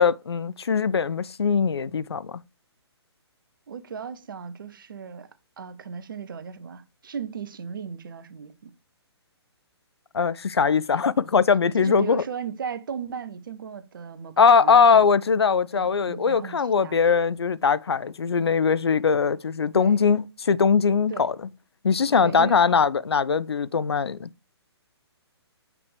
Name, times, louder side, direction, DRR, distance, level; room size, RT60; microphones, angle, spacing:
voice 1, 0.0-2.4 10.1-12.2 14.4-21.4 21.8-24.3, left 6 dB, 65° left, 0.4 m, -21 dB
voice 2, 3.7-5.3 5.6-8.7 11.8-15.1 15.7-17.0 19.7-20.0 21.1-21.3 22.2-22.6, right 6 dB, 50° right, 0.7 m, -36 dB
6.0 x 5.9 x 3.3 m
figure-of-eight pair, 130°, 14 cm